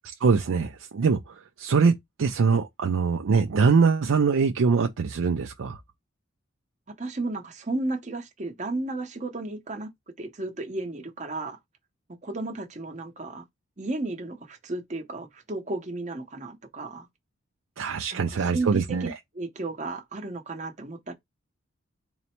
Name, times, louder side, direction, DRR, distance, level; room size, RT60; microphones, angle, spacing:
voice 1, 0.2-1.9 2.2-5.8 17.8-19.1, right 5 dB, 85° right, 0.4 m, -23 dB
voice 2, 7.0-9.9 10.2-11.6 12.2-13.4 13.8-17.1 18.1-21.1, right 2 dB, 35° right, 0.8 m, -33 dB
3.9 x 2.1 x 4.3 m
head